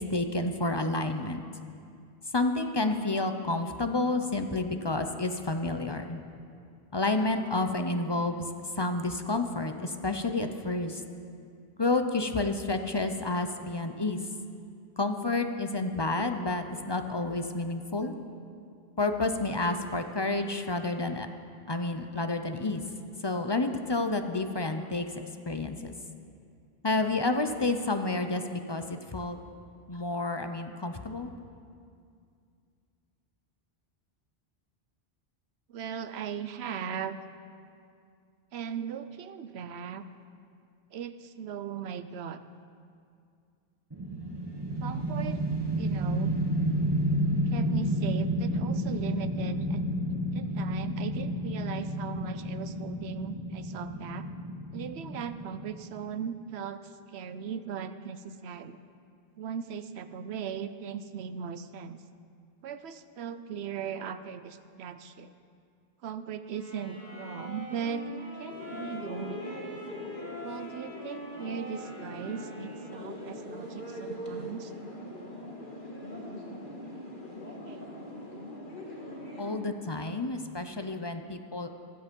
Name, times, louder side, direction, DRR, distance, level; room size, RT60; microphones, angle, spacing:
voice 1, 0.0-1.4 2.3-6.2 6.9-8.4 8.8-11.0 11.8-14.2 15.0-18.1 19.0-21.3 21.7-22.8 23.2-25.1 25.5-25.9 26.8-29.4 29.9-31.3 79.4-81.7, left 2 dB, 30° left, 7 dB, 0.7 m, -30 dB
voice 2, 35.7-37.2 38.5-40.0 40.9-42.4 44.8-45.4 45.7-46.4 47.5-49.8 50.3-54.3 54.7-56.8 57.1-58.8 59.4-62.0 62.6-65.3 66.0-69.7 70.4-74.7 77.5-77.9, right 7 dB, 85° right, 11 dB, 1.0 m, -38 dB
sound 1, 43.9-56.1, equal, 25° right, 1.3 m, -31 dB
sound 2, 66.5-73.1, left 1 dB, 80° left, 4.9 m, -43 dB
sound 3, 68.5-79.6, equal, 55° left, 2.0 m, -42 dB
15.5 x 12.5 x 5.3 m, 2.3 s
omnidirectional pair, 1.0 m